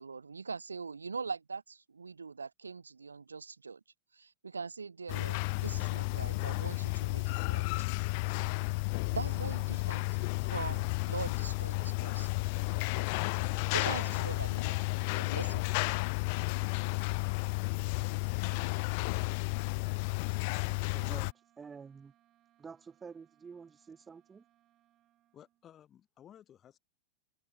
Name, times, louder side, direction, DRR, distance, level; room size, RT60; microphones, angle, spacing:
voice 1, 0.0-3.8 4.1-7.7 9.1-10.1 10.4-12.3 13.7-14.8 15.2-15.6, right 5 dB, 75° right, 1.3 m, -42 dB
sound 1, 5.1-21.3, left 30 dB, 45° left, 0.4 m, -32 dB
sound 2, 13.0-25.7, right 13 dB, 35° right, 6.7 m, -70 dB
voice 2, 20.6-22.1 22.6-24.4, right 5 dB, 15° right, 2.2 m, -50 dB
voice 3, 25.3-26.8, left 10 dB, 25° left, 1.9 m, -56 dB
figure-of-eight pair, 90°, 0 cm